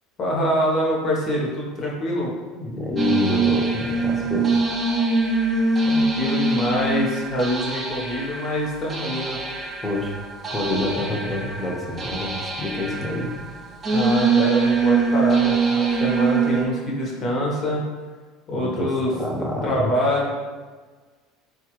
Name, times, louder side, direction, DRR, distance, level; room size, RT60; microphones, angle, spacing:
voice 1, 0.2-2.3 5.8-9.4 13.9-17.8 18.5-19.1 19.6-20.3, equal, 45° left, -3 dB, 1.0 m, -25 dB
voice 2, 2.5-4.6 9.8-10.1 10.5-13.3 18.5-19.9, left 2 dB, 10° left, -2 dB, 0.8 m, -27 dB
sound 1, 3.0-16.6, right 4 dB, 25° right, 0.7 m, -23 dB
3.6 x 2.4 x 3.0 m, 1.4 s
supercardioid pair, 90°, 0 cm